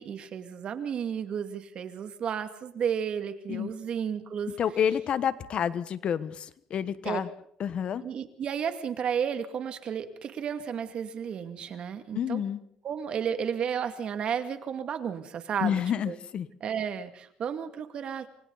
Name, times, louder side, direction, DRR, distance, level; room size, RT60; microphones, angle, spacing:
voice 1, 0.0-4.5 7.0-7.2 8.0-12.4 12.8-16.1 16.6-18.3, right 8 dB, 50° right, 8 dB, 2.3 m, -32 dB
voice 2, 4.6-7.3 7.6-8.0 12.1-12.6 15.6-16.5, left 8 dB, 50° left, 14 dB, 1.2 m, -29 dB
28.5 x 24.5 x 4.1 m, 0.67 s
cardioid pair, 100°, 2 cm